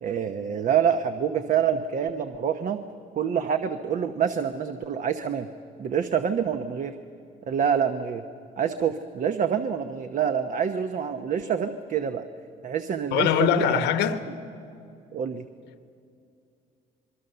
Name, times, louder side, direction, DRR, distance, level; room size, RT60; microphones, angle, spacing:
voice 1, 0.0-2.8 3.1-5.5 5.8-6.9 7.4-8.2 8.6-12.2 12.6-13.8 15.1-15.4, right 8 dB, 50° right, 1.0 m, -26 dB
voice 2, 13.1-14.2, left 9 dB, 85° left, 1.4 m, -22 dB
25.5 x 23.0 x 6.9 m
cardioid pair, 110°, 17 cm